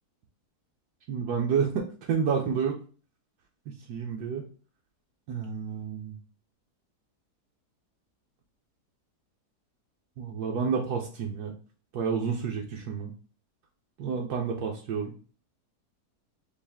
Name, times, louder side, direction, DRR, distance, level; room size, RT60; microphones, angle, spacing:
voice 1, 1.1-2.8 3.7-4.4 5.3-6.2 10.2-11.5 11.9-13.1 14.0-15.1, right 6 dB, 75° right, 0 dB, 1.1 m, -30 dB
4.6 x 2.4 x 3.4 m, 0.39 s
omnidirectional pair, 1.7 m